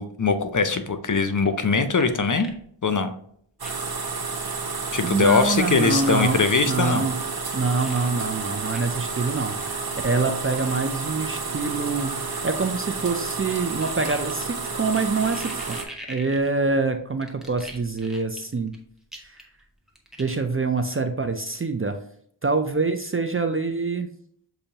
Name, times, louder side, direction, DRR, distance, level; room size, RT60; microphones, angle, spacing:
voice 1, 0.0-2.5 2.8-3.1 4.9-7.1, left 4 dB, 40° left, 8 dB, 0.5 m, -22 dB
sound 1, 1.3-2.6 2.9-3.0 3.6-3.9 4.4-4.5 5.5-6.4 7.3-7.4 7.8-8.1 8.7-8.8 9.1-9.2 10.0-10.1 10.6-11.0 11.8-13.1 13.4-16.8 17.2-18.8 19.1-19.6 19.9-20.4, equal, ahead, 1.0 m, -43 dB
sound 2, 3.6-15.8, right 4 dB, 45° right, 0.8 m, -31 dB
voice 2, 5.0-7.2 7.5-15.8 16.1-18.7 19.2-19.4 20.2-22.0 22.4-24.1, right 3 dB, 30° right, 6 dB, 0.4 m, -25 dB
6.6 x 2.7 x 2.8 m, 0.65 s
wide cardioid pair, 45°, 49 cm